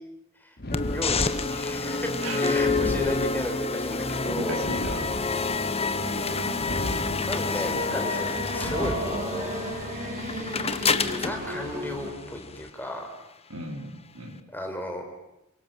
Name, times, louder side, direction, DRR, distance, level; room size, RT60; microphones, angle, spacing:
sound 1, 0.6-1.6 2.6-3.7 4.6-5.6 6.6-7.6 8.6-9.6, left 1 dB, 50° left, 2.8 m, -35 dB
sound 2, 0.7-12.7, left 4 dB, 30° left, 1.2 m, -28 dB
voice 1, 0.9-4.7 7.3-9.5 11.2-13.1 14.5-15.0, left 1 dB, 10° left, 3 dB, 4.6 m, -34 dB
voice 2, 4.2-5.1 13.5-14.4, right 1 dB, 70° right, 3 dB, 5.0 m, -35 dB
sound 3, 6.0-12.1, equal, 40° right, 5.9 m, -35 dB
28.0 x 24.0 x 7.5 m, 0.91 s
head